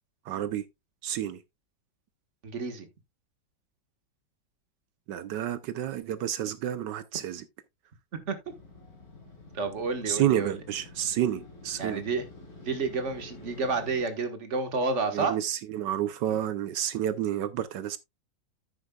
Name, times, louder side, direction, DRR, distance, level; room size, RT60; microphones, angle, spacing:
voice 1, 0.2-0.6 1.0-1.4 5.1-7.4 10.1-12.0 15.1-18.0, right 11 dB, 70° right, 1.2 m, -30 dB
voice 2, 2.4-2.9 8.2-8.4 9.5-10.6 11.8-12.2 12.6-15.3, right 4 dB, 40° right, 1.7 m, -30 dB
Motorcycle, 8.4-14.0, left 2 dB, 50° left, 3.4 m, -48 dB
9.8 x 9.1 x 2.3 m
omnidirectional pair, 2.1 m